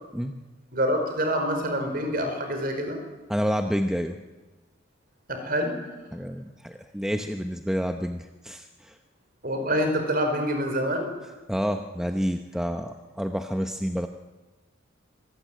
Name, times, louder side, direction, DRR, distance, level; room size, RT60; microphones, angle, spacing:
voice 1, 0.7-3.0 5.3-5.8 9.4-11.1, equal, 40° right, 5 dB, 5.2 m, -26 dB
voice 2, 3.3-4.2 6.1-9.0 11.5-14.1, equal, 5° right, 5 dB, 0.8 m, -29 dB
26.0 x 18.5 x 9.2 m, 1.2 s
head